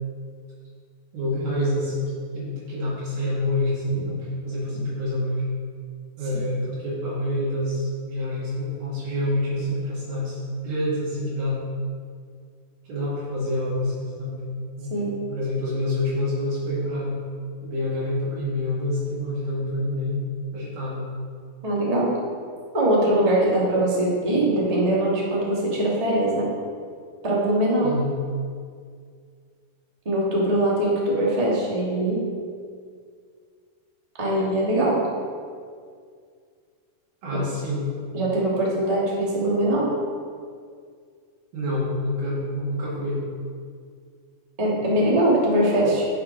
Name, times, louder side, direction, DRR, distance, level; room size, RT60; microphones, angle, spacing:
voice 1, 1.1-5.4 6.2-11.6 12.9-14.5 14.8-14.9 15.3-17.2 17.6-20.3 20.5-21.1 27.8-28.1 37.2-37.9 41.5-43.2, left 1 dB, 70° right, -8 dB, 3.6 m, -27 dB
voice 2, 21.6-22.1 22.7-26.5 27.2-27.9 30.0-32.2 34.2-35.0 38.1-39.9 44.6-46.0, right 1 dB, 20° right, -5 dB, 1.0 m, -22 dB
10.5 x 5.9 x 5.3 m, 2.1 s
omnidirectional pair, 4.4 m